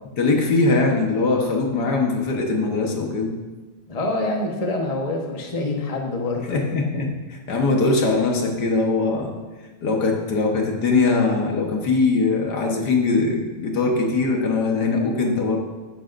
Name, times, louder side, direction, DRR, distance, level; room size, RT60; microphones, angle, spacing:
voice 1, 0.2-3.4 6.5-9.3 9.8-15.6, left 3 dB, 70° left, 0 dB, 1.8 m, -21 dB
voice 2, 3.9-6.6, left 2 dB, 25° left, 1 dB, 1.1 m, -26 dB
13.0 x 9.7 x 2.6 m, 1.3 s
omnidirectional pair, 1.9 m